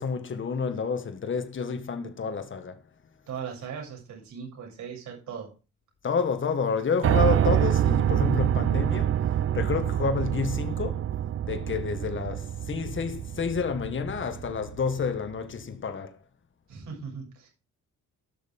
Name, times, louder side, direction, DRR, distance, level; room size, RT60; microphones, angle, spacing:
voice 1, 0.0-2.8 6.0-9.1 9.5-11.0 11.4-16.1, left 5 dB, 40° left, 1.8 m, -29 dB
voice 2, 3.3-5.5 16.7-17.5, right 7 dB, 75° right, 7.6 m, -38 dB
Piano, 7.0-15.0, right 10 dB, 45° right, 0.5 m, -26 dB
16.5 x 6.6 x 3.7 m
cardioid pair, 90°, 30 cm